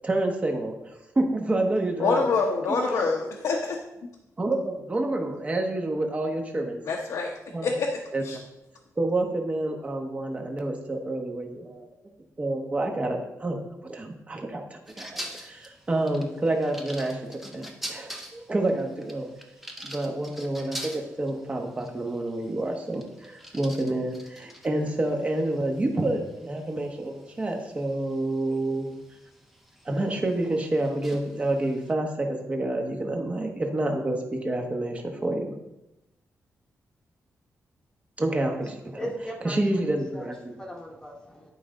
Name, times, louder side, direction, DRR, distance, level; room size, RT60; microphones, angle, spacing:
voice 1, 0.0-2.2 2.7-3.1 4.4-6.8 7.5-7.7 8.1-8.2 9.0-11.9 12.4-19.3 19.8-29.0 29.8-35.5 38.2-39.0 39.4-40.5, right 2 dB, 25° right, 2 dB, 1.1 m, -28 dB
voice 2, 2.0-3.8 6.9-7.3 7.6-8.0 8.2-8.4, left 4 dB, 75° left, -1 dB, 1.0 m, -25 dB
sound 1, 14.9-31.9, equal, 5° right, 0.7 m, -45 dB
voice 3, 38.9-41.5, equal, 15° left, -1 dB, 1.1 m, -38 dB
11.0 x 5.0 x 3.7 m, 0.92 s
wide cardioid pair, 160°, 6 cm